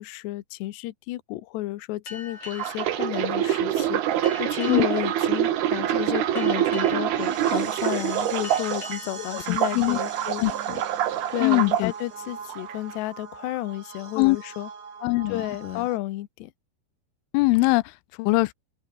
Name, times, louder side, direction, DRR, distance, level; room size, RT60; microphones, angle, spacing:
voice 1, 0.0-10.6 11.3-14.7 15.3-16.5, left 17 dB, 70° left, 3.0 m, -32 dB
sound 1, 2.1-11.2, left 4 dB, 35° left, 7.3 m, -45 dB
sound 2, 2.5-9.0 9.4-11.8 12.5-12.7, right 11 dB, 60° right, 3.3 m, -25 dB
sound 3, 5.5-16.0, right 6 dB, 40° right, 4.3 m, -41 dB
voice 2, 9.3-10.0 10.4-10.8 11.4-11.9 14.2-14.4 15.0-15.8 17.3-18.5, left 23 dB, 90° left, 3.2 m, -23 dB
open air
omnidirectional pair, 5.5 m